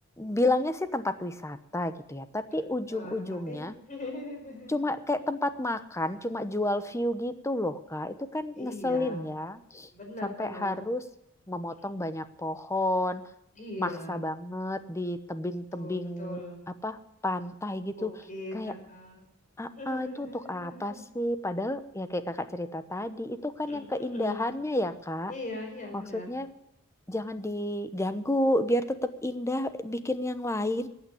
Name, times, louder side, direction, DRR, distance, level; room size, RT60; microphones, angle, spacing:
voice 1, 0.2-3.7 4.7-9.9 10.2-11.0 11.5-13.2 13.8-16.4 16.8-17.0 17.2-18.1 18.5-18.7 19.6-25.3 25.9-26.5 27.1-30.9, left 1 dB, 15° left, 12 dB, 0.9 m, -31 dB
voice 2, 2.5-4.8 8.5-9.2 9.9-10.8 11.8-11.9 13.5-14.2 15.7-16.6 18.0-19.2 19.8-21.0 23.7-24.5 25.3-26.3, left 1 dB, 35° left, 2 dB, 4.9 m, -41 dB
15.0 x 8.8 x 8.4 m, 0.80 s
head